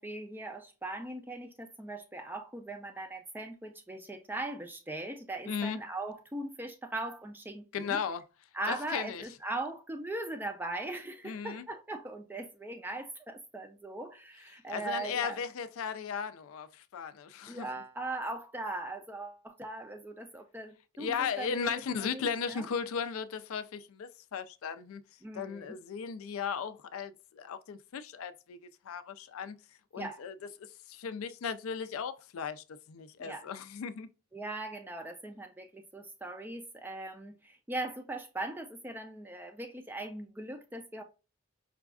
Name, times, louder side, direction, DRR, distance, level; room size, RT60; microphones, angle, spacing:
voice 1, 0.0-8.0 8.5-15.4 17.5-22.7 25.2-25.8 30.0-30.2 33.2-33.5 34.3-41.0, right 2 dB, 10° right, 0.3 m, -40 dB
voice 2, 5.5-5.8 7.7-8.2 8.7-9.2 11.2-11.7 14.7-17.7 21.0-25.0 25.3-28.6 28.8-29.6 29.9-30.3 30.6-34.1, left 6 dB, 70° left, 0.3 m, -36 dB
4.9 x 2.3 x 2.3 m
head